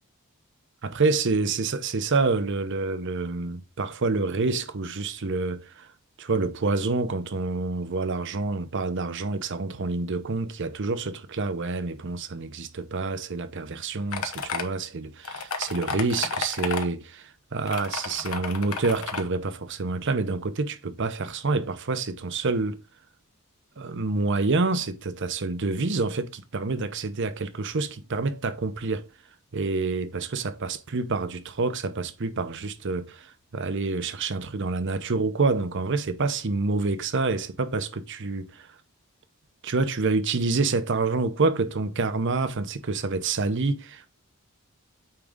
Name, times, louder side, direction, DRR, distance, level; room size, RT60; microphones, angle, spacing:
voice 1, 0.8-5.9 6.2-22.8 23.8-29.1 29.5-38.5 39.6-44.1, right 3 dB, 55° right, 0.7 m, -27 dB
sound 1, 14.1-14.6 15.2-16.9 17.7-19.2, left 5 dB, 80° left, 1.0 m, -32 dB
8.9 x 3.8 x 3.6 m
head